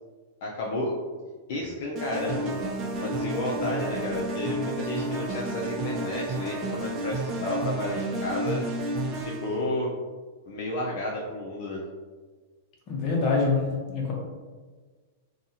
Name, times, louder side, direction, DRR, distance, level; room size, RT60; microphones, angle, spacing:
voice 1, 0.4-0.9 1.5-2.6 2.9-8.6 9.2-9.9 10.4-11.8, left 1 dB, 60° left, -4 dB, 0.5 m, -31 dB
sound 1, 1.9-9.6, right 2 dB, 35° right, 0.6 m, -31 dB
voice 2, 12.9-14.1, left 4 dB, 40° left, -2 dB, 0.8 m, -25 dB
2.6 x 2.4 x 2.7 m, 1.4 s
hypercardioid pair, 130°, 0 cm